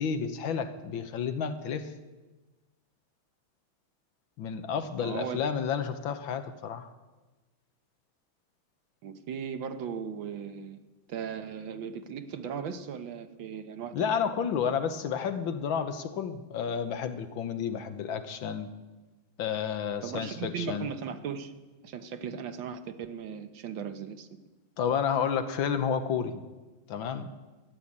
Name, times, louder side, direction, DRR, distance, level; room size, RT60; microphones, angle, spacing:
voice 1, 0.0-1.9 4.4-6.9 13.9-18.7 19.4-20.9 24.8-26.4 26.9-27.3, left 7 dB, 70° left, 9 dB, 1.7 m, -31 dB
voice 2, 5.0-5.5 9.0-14.1 20.0-21.5 21.8-24.3, right 7 dB, 70° right, 9 dB, 1.7 m, -37 dB
13.5 x 11.5 x 8.7 m, 1.2 s
omnidirectional pair, 2.3 m